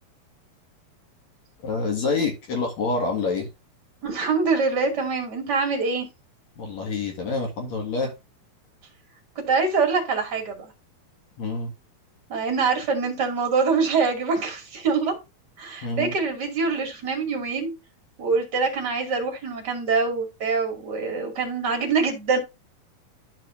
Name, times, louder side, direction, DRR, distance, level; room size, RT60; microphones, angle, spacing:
voice 1, 1.6-3.5 6.6-8.1 11.4-11.7 15.8-16.1, left 4 dB, 50° left, 2.7 m, -27 dB
voice 2, 4.0-6.1 9.5-10.7 12.3-15.1 15.6-17.7 18.2-22.4, right 4 dB, 30° right, 2.4 m, -24 dB
13.0 x 4.8 x 2.5 m
omnidirectional pair, 4.4 m